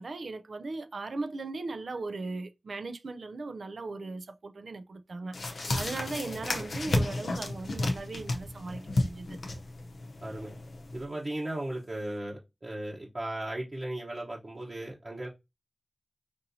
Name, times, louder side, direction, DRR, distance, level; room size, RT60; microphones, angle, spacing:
voice 1, 0.0-9.4, right 3 dB, 75° right, 0.4 m, -38 dB
sound 1, 5.3-11.0, left 2 dB, 85° left, 0.6 m, -32 dB
voice 2, 10.2-10.6 10.9-15.3, right 1 dB, 45° right, 1.0 m, -36 dB
5.1 x 2.7 x 2.7 m
wide cardioid pair, 60°, 0 cm